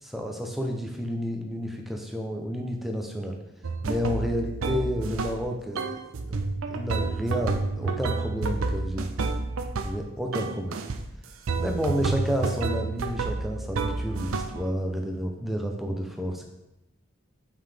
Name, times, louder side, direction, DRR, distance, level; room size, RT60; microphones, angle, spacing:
voice 1, 0.0-3.4 3.8-6.0 6.3-6.4 6.7-9.1 9.8-10.8 11.5-16.4, equal, ahead, 2 dB, 0.6 m, -30 dB
sound 1, 3.6-5.5 5.8-10.0 10.3-11.0 11.5-14.7, right 3 dB, 80° right, 0.5 m, -30 dB
5.7 x 5.4 x 3.3 m, 0.92 s
head